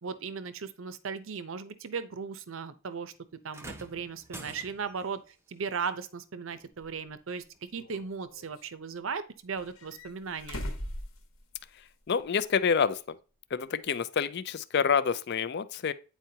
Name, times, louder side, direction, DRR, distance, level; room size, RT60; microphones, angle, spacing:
voice 1, 0.0-3.1 3.4-7.4 7.7-10.6, right 5 dB, 60° right, 0.6 m, -37 dB
sound 1, 3.5-5.1 6.5-6.7 7.5-7.6, right 1 dB, 10° right, 0.5 m, -46 dB
sound 2, 6.8-6.9 7.7-8.7 9.6-11.9 12.2-12.3 13.9-14.0, equal, 70° left, 1.2 m, -41 dB
voice 2, 12.1-13.0 13.5-15.9, left 6 dB, 50° left, 0.4 m, -27 dB
9.1 x 4.6 x 2.8 m
head